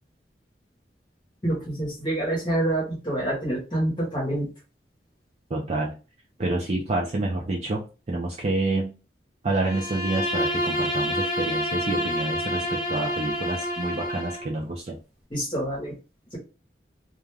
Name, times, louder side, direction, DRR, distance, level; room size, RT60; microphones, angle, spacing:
voice 1, 1.4-4.5 15.3-15.9 16.3-16.4, right 1 dB, 25° left, -4 dB, 0.9 m, -27 dB
voice 2, 5.5-5.9 6.4-7.8 8.1-8.9 9.4-15.0, right 2 dB, 35° right, -1 dB, 0.4 m, -28 dB
Bowed string instrument, 9.6-14.5, equal, ahead, 0.9 m, -28 dB
2.3 x 2.2 x 3.2 m, 0.33 s
head